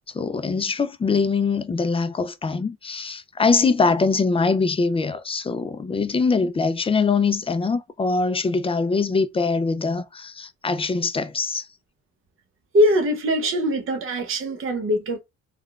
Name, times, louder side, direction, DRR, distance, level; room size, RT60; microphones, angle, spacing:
voice 1, 0.1-11.7, left 4 dB, 20° left, 0.3 m, -23 dB
voice 2, 12.7-15.2, equal, 45° right, 0.8 m, -22 dB
3.5 x 2.2 x 2.3 m
cardioid pair, 90°, 30 cm